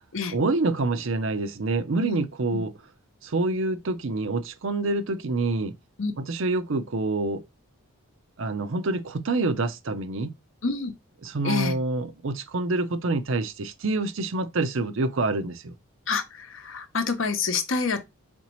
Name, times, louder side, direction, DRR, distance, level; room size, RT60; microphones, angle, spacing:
voice 1, 0.3-2.7 3.2-5.7 6.2-7.4 8.4-10.3 11.2-15.7, right 2 dB, 60° right, 0.6 m, -27 dB
voice 2, 11.4-11.8 16.1-18.0, left 4 dB, 60° left, 0.7 m, -27 dB
4.3 x 4.0 x 3.0 m
head